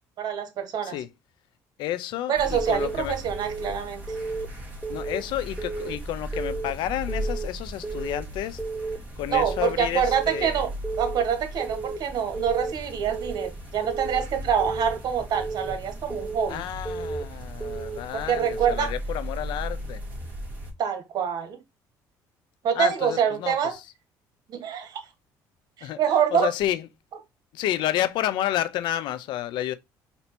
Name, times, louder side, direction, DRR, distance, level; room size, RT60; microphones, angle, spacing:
voice 1, 0.2-1.0 2.3-4.0 9.3-10.7 11.0-16.6 18.1-18.9 20.8-21.6 22.6-23.8 24.5-25.0 25.8-26.5, right 8 dB, 60° right, 1.2 m, -26 dB
voice 2, 1.8-3.2 4.9-8.6 9.2-10.6 16.5-20.0 22.8-23.8 25.8-26.0 26.3-26.9 27.5-29.7, left 12 dB, 75° left, 0.5 m, -30 dB
sound 1, 2.3-20.7, equal, 15° right, 2.4 m, -37 dB
Keyboard (musical) / Alarm, 2.6-3.0 3.3-3.7 4.1-4.5 4.8-5.2 5.6-6.0 6.3-6.7 7.1-7.5 7.8-8.2 8.6-9.0 9.3-9.7 10.1-10.5 10.8-11.2 11.6-12.0 12.3-12.7 13.1-13.5 13.8-14.2 14.6-15.0 15.4-15.7 16.1-16.5 16.9-17.2 17.6-18.0 18.4-18.7, right 4 dB, ahead, 0.7 m, -33 dB
4.4 x 2.8 x 4.2 m
cardioid pair, 105°, 8 cm